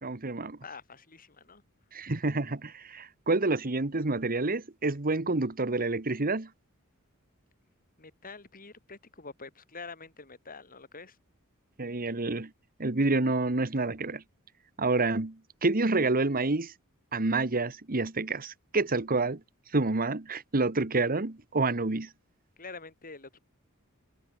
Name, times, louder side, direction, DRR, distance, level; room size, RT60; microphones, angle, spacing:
voice 1, 0.0-0.6 1.9-6.5 11.8-12.5 12.8-14.2 14.8-16.7 17.1-19.4 19.7-22.1, right 3 dB, 40° right, 1.4 m, -28 dB
voice 2, 0.6-1.6 8.0-11.2 22.6-23.4, left 4 dB, 40° left, 5.7 m, -46 dB
head